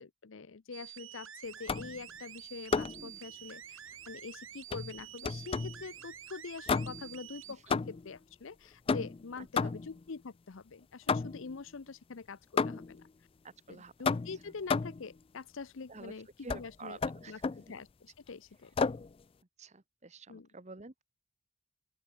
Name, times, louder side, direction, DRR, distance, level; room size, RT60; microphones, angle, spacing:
voice 1, 0.0-3.8 4.1-13.1 13.7-17.0 17.3-18.7 20.3-20.5, left 4 dB, 65° left, 0.6 m, -45 dB
sound 1, 0.7-7.5, right 10 dB, 70° right, 6.7 m, -49 dB
sound 2, 1.7-2.0 2.7-3.1 4.7-5.8 6.7-7.2 7.7-8.2 8.9-10.0 11.1-11.6 12.6-13.0 14.1-15.1 16.5-16.7 17.0-17.7 18.8-19.1, left 4 dB, 25° left, 0.3 m, -32 dB
voice 2, 13.4-13.9 15.9-16.1 16.4-17.5 19.6-21.0, right 3 dB, 30° right, 1.1 m, -49 dB
open air
head